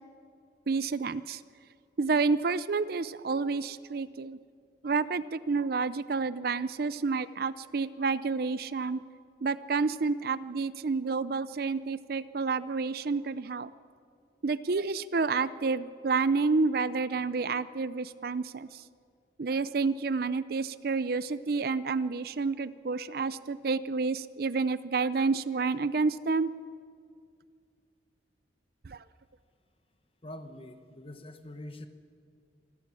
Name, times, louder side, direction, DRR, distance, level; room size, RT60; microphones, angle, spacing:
voice 1, 0.7-1.4 2.0-4.4 4.8-9.0 9.4-13.7 14.4-18.8 19.4-26.5 28.8-29.0, right 4 dB, 55° right, 16 dB, 0.5 m, -29 dB
voice 2, 30.2-31.9, left 1 dB, 30° left, 9 dB, 1.2 m, -44 dB
26.0 x 12.0 x 8.4 m, 2.2 s
head